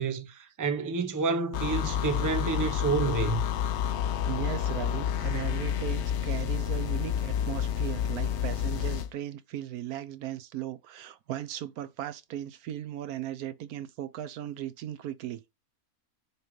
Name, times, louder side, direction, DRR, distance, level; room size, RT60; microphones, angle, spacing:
voice 1, 0.0-3.4, right 5 dB, 20° right, 0.6 m, -29 dB
sound 1, 1.5-9.1, left 9 dB, 65° left, 0.7 m, -29 dB
voice 2, 4.3-15.4, right 11 dB, 80° right, 1.1 m, -37 dB
6.7 x 3.2 x 5.1 m
omnidirectional pair, 1.6 m